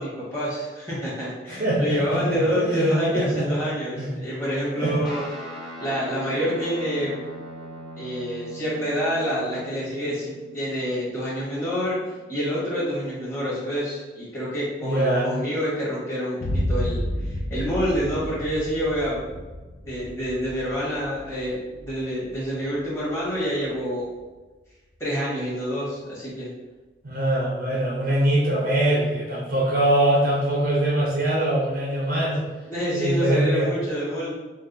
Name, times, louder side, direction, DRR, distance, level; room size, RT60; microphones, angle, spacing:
voice 1, 0.0-5.2 5.8-7.2 7.9-12.0 12.3-19.2 19.8-24.1 25.0-26.5 32.7-34.3, equal, 15° left, -8 dB, 1.2 m, -27 dB
voice 2, 1.5-3.5 4.0-4.2 4.8-5.0 14.8-15.3 27.0-32.4 32.9-33.7, right 1 dB, 50° right, -4 dB, 0.6 m, -23 dB
Guitar, 5.0-13.8, equal, ahead, 0.5 m, -41 dB
Boom, 16.4-24.2, equal, 65° left, 0.5 m, -32 dB
4.4 x 2.0 x 2.6 m, 1.2 s
head